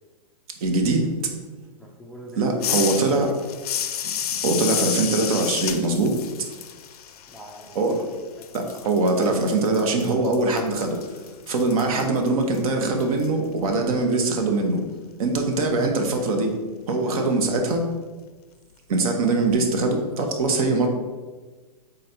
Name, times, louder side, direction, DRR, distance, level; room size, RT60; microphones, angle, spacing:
voice 1, 0.6-1.1 2.4-3.3 4.4-6.2 7.7-8.1 8.5-11.0 11.5-14.8 15.2-16.5 16.9-17.9 18.9-20.9, right 3 dB, 60° right, 3 dB, 0.9 m, -22 dB
voice 2, 1.8-3.4 3.7-3.9 7.3-7.8 8.4-8.5 17.0-17.3 19.1-19.3, right 1 dB, ahead, -1 dB, 0.4 m, -41 dB
sound 1, 2.6-8.1 8.4-13.3, left 9 dB, 65° left, 0.5 m, -31 dB
3.9 x 3.2 x 4.2 m, 1.3 s
hypercardioid pair, 120°, 21 cm